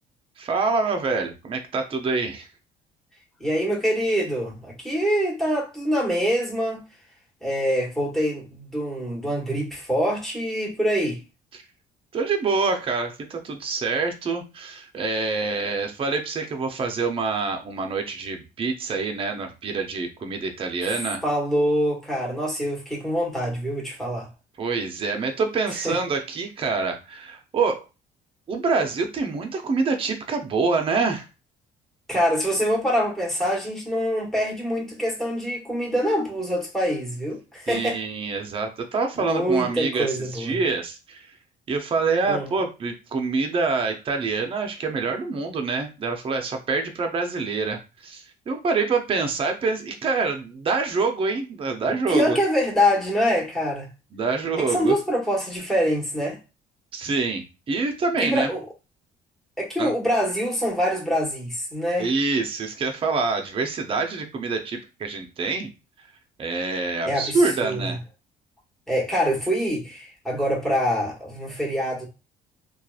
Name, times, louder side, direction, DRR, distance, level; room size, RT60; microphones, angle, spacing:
voice 1, 0.4-2.5 11.5-11.6 12.1-21.2 24.6-27.8 28.5-31.3 37.7-41.4 41.7-52.4 54.1-55.0 56.9-58.5 59.8-59.9 62.0-65.7 66.0-66.1 66.4-68.0, right 4 dB, 30° right, 0.6 m, -26 dB
voice 2, 3.4-6.8 7.4-11.2 20.8-20.9 21.2-24.3 25.8-25.9 32.1-38.0 39.2-40.6 42.3-42.5 52.1-53.9 54.7-56.4 58.2-58.6 59.6-62.1 67.0-67.8 68.9-72.1, equal, ahead, 1.3 m, -25 dB
2.8 x 2.3 x 2.4 m
cardioid pair, 110°, 17 cm